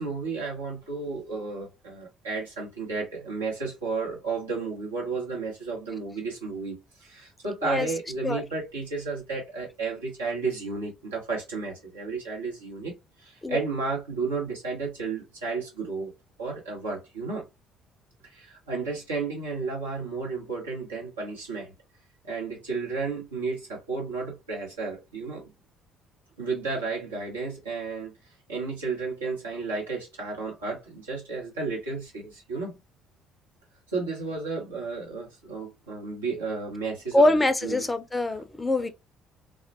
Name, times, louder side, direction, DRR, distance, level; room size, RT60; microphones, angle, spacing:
voice 1, 0.0-12.9 13.2-16.1 16.4-17.4 18.2-21.7 22.2-25.5 26.4-28.1 28.5-32.8 33.9-37.4 37.6-37.8, right 4 dB, 85° right, 0.9 m, -32 dB
voice 2, 37.1-38.9, left 1 dB, 20° left, 0.4 m, -23 dB
2.3 x 2.1 x 2.5 m
figure-of-eight pair, 50°, 0 cm